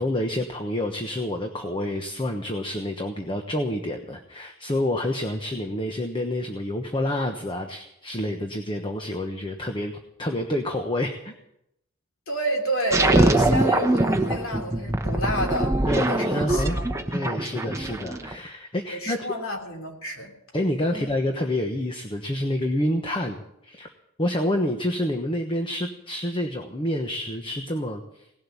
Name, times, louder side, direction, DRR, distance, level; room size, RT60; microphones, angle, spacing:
voice 1, 0.0-11.3 15.9-16.8 17.1-19.3 20.5-23.9 24.2-28.2, left 1 dB, 25° left, 4 dB, 1.1 m, -28 dB
voice 2, 12.3-16.9 18.9-20.3 20.9-21.1, right 1 dB, 70° left, 2 dB, 3.3 m, -29 dB
sound 1, 12.9-18.3, right 2 dB, 15° right, 0.8 m, -23 dB
18.0 x 7.6 x 9.9 m, 0.80 s
head